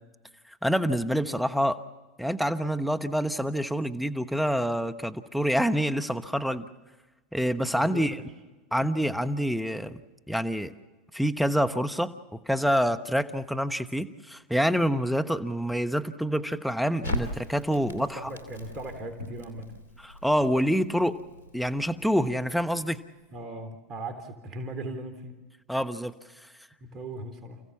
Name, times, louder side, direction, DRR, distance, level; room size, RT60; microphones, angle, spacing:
voice 1, 0.6-1.8 2.2-6.7 7.3-8.2 8.7-10.0 10.3-10.7 11.1-18.3 20.0-21.2 21.5-23.0 25.7-26.1, equal, ahead, 10 dB, 1.1 m, -27 dB
voice 2, 7.3-8.0 17.8-19.7 23.3-25.3 26.8-27.6, right 2 dB, 35° right, 7 dB, 3.4 m, -39 dB
Crackle, 17.0-23.2, left 1 dB, 85° left, 2.6 m, -39 dB
30.0 x 16.0 x 7.2 m, 1.2 s
hypercardioid pair, 90°, 0 cm